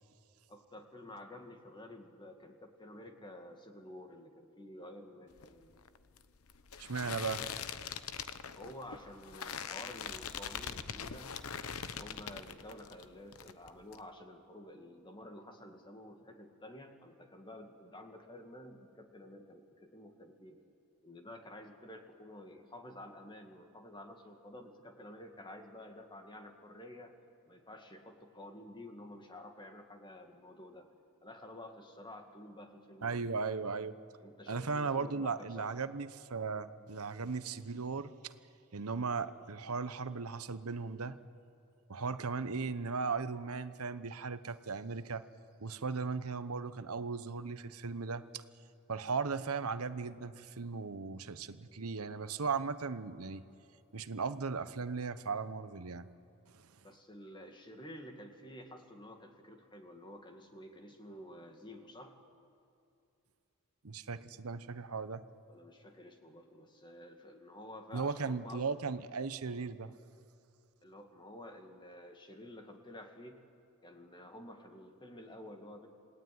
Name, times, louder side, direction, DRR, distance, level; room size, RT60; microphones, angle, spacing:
voice 1, 0.5-5.8 8.6-11.3 11.8-20.6 21.0-27.2 27.5-30.9 31.2-33.3 34.2-35.7 56.8-62.2 65.5-68.6 70.8-73.4 73.8-75.9, left 1 dB, 20° left, 4 dB, 2.2 m, -51 dB
sound 1, 5.3-13.1 13.3-14.0, left 7 dB, 75° left, 1.0 m, -43 dB
voice 2, 6.8-7.4 33.0-33.9 34.5-38.3 38.7-41.1 41.9-45.2 45.6-48.2 48.9-53.4 53.9-56.1 56.5-56.7 63.8-65.2 67.9-69.9, right 4 dB, 85° right, 12 dB, 0.9 m, -37 dB
27.5 x 18.5 x 9.5 m, 2.6 s
head